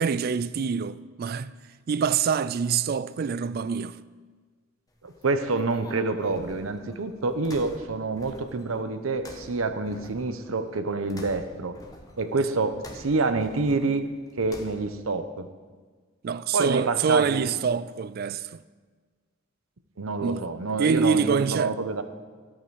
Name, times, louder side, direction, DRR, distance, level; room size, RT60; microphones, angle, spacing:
voice 1, 0.0-1.5 1.9-4.0 16.2-18.6 20.2-21.8, right 6 dB, 45° right, 0.3 m, -26 dB
sound 1, 4.9-15.1, left 1 dB, 15° left, 1.0 m, -48 dB
voice 2, 5.0-11.8 12.2-14.0 14.4-15.5 16.5-17.5 20.0-22.0, right 3 dB, 85° right, 0.8 m, -27 dB
13.5 x 8.5 x 4.7 m
head